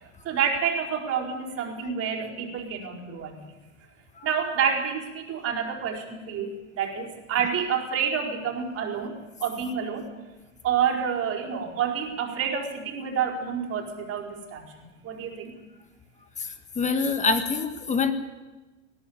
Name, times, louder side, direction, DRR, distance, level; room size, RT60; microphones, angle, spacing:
voice 1, 0.0-3.3 4.2-10.1 10.6-15.5, right 7 dB, 35° right, 2 dB, 4.6 m, -28 dB
voice 2, 16.4-18.1, left 4 dB, 20° left, 8 dB, 1.8 m, -26 dB
19.5 x 17.0 x 8.7 m, 1.1 s
hypercardioid pair, 95°, 39 cm